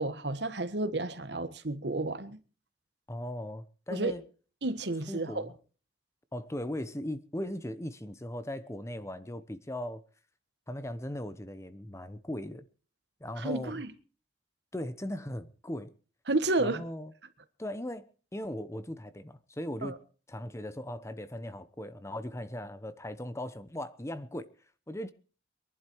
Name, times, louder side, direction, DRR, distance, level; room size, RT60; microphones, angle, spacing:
voice 1, 0.0-2.4 3.9-4.1 4.6-5.5 13.4-13.9 16.3-16.8 19.8-20.0, right 2 dB, 70° right, 1.5 m, -31 dB
voice 2, 3.1-4.2 5.1-5.5 6.3-10.0 10.7-12.7 13.2-13.8 14.7-15.9 16.6-17.1 17.6-18.1 18.3-20.0 20.3-24.5 24.9-25.1, left 1 dB, 15° left, 0.9 m, -38 dB
23.0 x 11.5 x 4.6 m
head